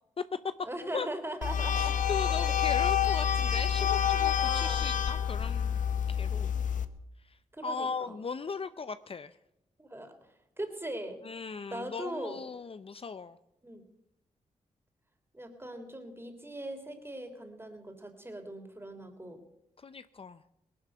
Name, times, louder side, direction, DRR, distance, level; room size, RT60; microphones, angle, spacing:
voice 1, 0.6-2.0 2.2-2.6 3.4-4.8 7.5-8.1 9.8-10.2 10.6-11.2 11.7-12.4 13.6-13.8 15.3-19.4, right 1 dB, 15° right, 6 dB, 3.4 m, -40 dB
sound 1, 1.4-6.8, left 8 dB, 70° left, 0.9 m, -28 dB
voice 2, 1.7-5.8 6.1-6.5 7.3-7.4 7.6-9.4 11.2-13.4 19.8-20.4, left 5 dB, 45° left, 13 dB, 0.6 m, -38 dB
18.5 x 11.0 x 6.8 m, 0.85 s
cardioid pair, 55°, 14 cm